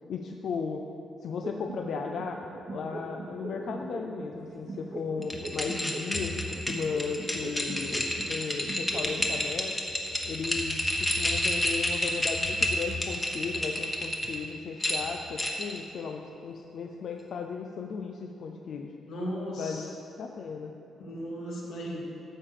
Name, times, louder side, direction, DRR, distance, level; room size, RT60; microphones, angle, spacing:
voice 1, 0.1-0.9 1.2-2.4 2.7-9.7 10.2-18.9 19.6-20.7, left 5 dB, 60° left, 3 dB, 0.6 m, -36 dB
sound 1, 1.4-4.4 4.7-8.4 8.7-9.4, right 2 dB, 25° right, 1.0 m, -40 dB
sound 2, 5.2-14.4 14.8-15.8, left 1 dB, 10° left, 1.2 m, -30 dB
voice 2, 19.1-19.9 21.0-22.0, equal, 90° left, -4 dB, 2.6 m, -36 dB
13.0 x 5.0 x 7.5 m, 2.8 s
cardioid pair, 145°, 0 cm